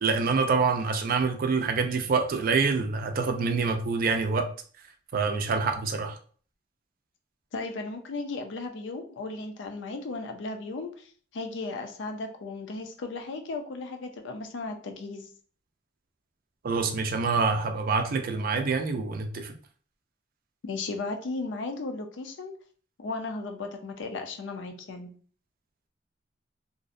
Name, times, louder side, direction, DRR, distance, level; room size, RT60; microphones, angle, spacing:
voice 1, 0.0-4.4 5.1-6.2 16.6-19.5, right 4 dB, 50° right, 6 dB, 0.4 m, -26 dB
voice 2, 7.5-15.3 20.6-22.5 23.0-25.1, left 3 dB, 75° left, 5 dB, 0.5 m, -35 dB
2.5 x 2.0 x 2.5 m, 0.44 s
head